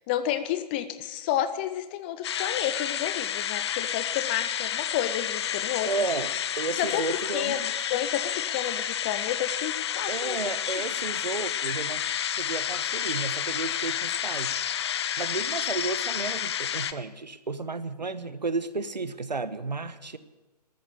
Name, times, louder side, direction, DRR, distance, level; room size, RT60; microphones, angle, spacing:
voice 1, 0.0-5.9 6.7-10.4, left 11 dB, 15° left, 13 dB, 0.4 m, -31 dB
sound 1, 2.2-16.9, left 9 dB, 40° left, 0.8 m, -30 dB
voice 2, 5.8-7.6 10.1-12.1 12.4-14.6 15.2-20.2, right 3 dB, 85° right, 14 dB, 1.2 m, -33 dB
13.5 x 13.0 x 6.9 m, 1.1 s
figure-of-eight pair, 140°, 21 cm